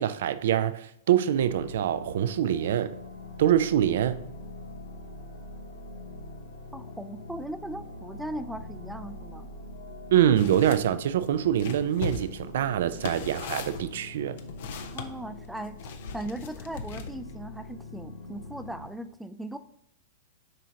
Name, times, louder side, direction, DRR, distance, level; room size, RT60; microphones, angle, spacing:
voice 1, 0.0-2.9 3.4-4.2 10.1-14.4, right 10 dB, 65° right, 13 dB, 0.4 m, -25 dB
sound 1, 1.3-18.9, left 2 dB, 90° left, 1.1 m, -43 dB
voice 2, 6.7-9.5 14.9-19.6, right 1 dB, 5° right, 11 dB, 0.4 m, -38 dB
sound 2, 10.3-10.8 11.2-15.1 15.8-17.3, left 5 dB, 60° left, 0.6 m, -38 dB
7.6 x 5.0 x 2.8 m, 0.77 s
hypercardioid pair, 105°, 0 cm